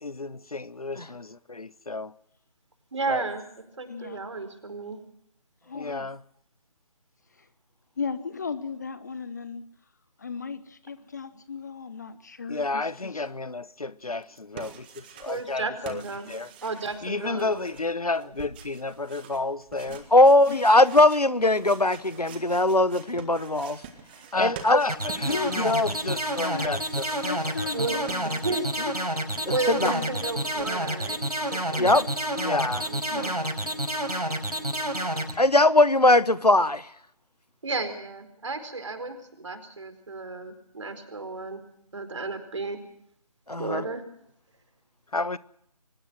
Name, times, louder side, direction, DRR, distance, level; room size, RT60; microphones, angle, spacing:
voice 1, 0.0-2.1 3.1-3.3 5.7-6.2 12.5-16.0 16.3-16.5 17.0-20.1 24.3-27.1 27.9-28.0 32.3-32.9 45.1-45.4, left 3 dB, 65° left, 1.0 m, -31 dB
voice 2, 2.9-3.4 3.8-5.0 15.3-16.3 16.6-17.7 18.2-18.3 27.7-28.0 28.2-28.6 29.5-31.2 31.5-32.0 32.7-33.3 37.6-41.6 41.9-42.8 43.6-44.0, right 3 dB, 50° right, 4.4 m, -33 dB
voice 3, 3.8-4.2 5.7-6.1 7.3-7.5 8.0-9.6 10.2-13.3 17.3-17.5 20.5-20.6 25.2-25.6 26.0-26.1 26.5-26.7 27.2-28.9 29.4-29.5 29.8-30.3 31.8-32.1 33.1-33.3 35.7-35.9, left 5 dB, 30° left, 0.9 m, -36 dB
sound 1, 14.2-15.6 15.8-28.8 29.1-30.9, right 7 dB, 15° right, 1.7 m, -47 dB
voice 4, 20.1-23.8 24.4-24.8 29.7-29.9 31.8-32.0 35.4-36.8 43.5-43.8, left 2 dB, 85° left, 1.3 m, -19 dB
sound 2, 24.9-35.3, right 1 dB, 75° right, 6.0 m, -29 dB
23.5 x 20.5 x 6.2 m
figure-of-eight pair, 155°, 20 cm